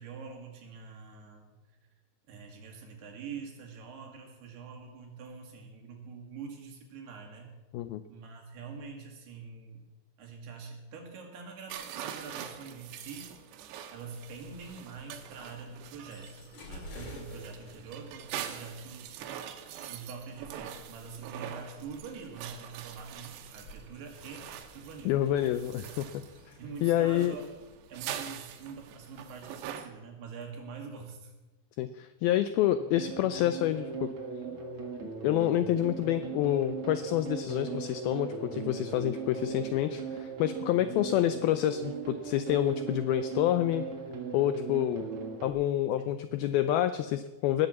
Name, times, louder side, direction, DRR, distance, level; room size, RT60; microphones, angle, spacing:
voice 1, 0.0-1.6 2.3-7.6 8.1-9.8 10.2-13.3 13.9-19.2 19.9-24.5 24.7-25.1 25.8-25.9 26.6-27.5 27.9-31.3 46.0-46.2, right 5 dB, 70° right, 1 dB, 4.2 m, -45 dB
sound 1, 11.7-29.9, right 9 dB, 90° right, 3.2 m, -44 dB
sound 2, 14.3-29.7, left 1 dB, 40° left, 4.1 m, -53 dB
voice 2, 25.1-26.1 26.8-27.4 31.8-34.1 35.2-43.8 44.3-45.0 45.4-47.7, left 12 dB, 85° left, 11 dB, 2.1 m, -28 dB
sound 3, 32.8-45.5, right 5 dB, 50° right, 1.8 m, -38 dB
18.5 x 7.8 x 7.3 m, 1.1 s
omnidirectional pair, 4.9 m